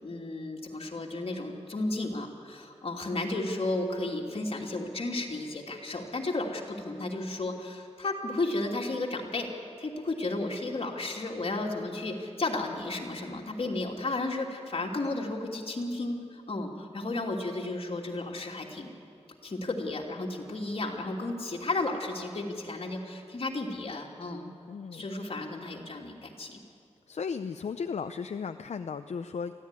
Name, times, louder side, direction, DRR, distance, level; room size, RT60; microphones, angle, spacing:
voice 1, 0.0-9.5 9.8-18.9 19.4-24.5 24.9-26.6, left 2 dB, 55° left, 0 dB, 2.9 m, -33 dB
voice 2, 24.7-25.1 27.1-29.5, left 6 dB, 75° left, 8 dB, 0.6 m, -35 dB
24.0 x 15.5 x 9.9 m, 2.4 s
wide cardioid pair, 110°, 12 cm